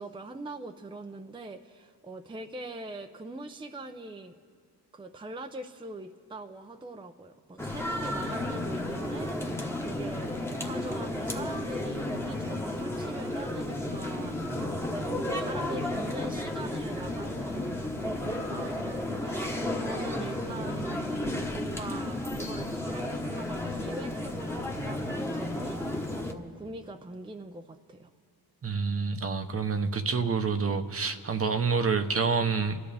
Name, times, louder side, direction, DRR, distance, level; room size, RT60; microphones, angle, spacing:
voice 1, 0.0-4.4 4.9-21.1 21.5-28.1, right 2 dB, 15° right, 5 dB, 0.6 m, -42 dB
sound 1, 7.6-26.3, left 1 dB, 5° left, 1.2 m, -33 dB
voice 2, 28.6-32.8, right 5 dB, 35° right, 7 dB, 0.9 m, -28 dB
27.0 x 13.0 x 3.4 m, 2.1 s
cardioid pair, 95°, 39 cm